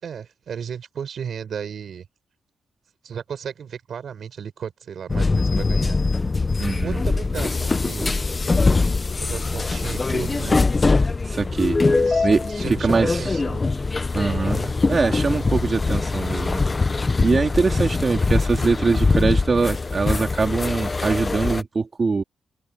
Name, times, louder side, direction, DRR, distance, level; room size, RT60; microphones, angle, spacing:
voice 1, 0.0-2.1 3.0-6.0 6.8-8.2 9.2-10.6 11.9-13.6, right 7 dB, 45° right, 4.6 m, -34 dB
sound 1, 5.1-21.6, left 3 dB, 20° left, 0.7 m, -22 dB
voice 2, 6.6-7.0 11.3-11.8 12.2-13.2 14.1-16.6 17.2-22.2, right 4 dB, 25° right, 3.9 m, -23 dB
wide cardioid pair, 175°, 0 cm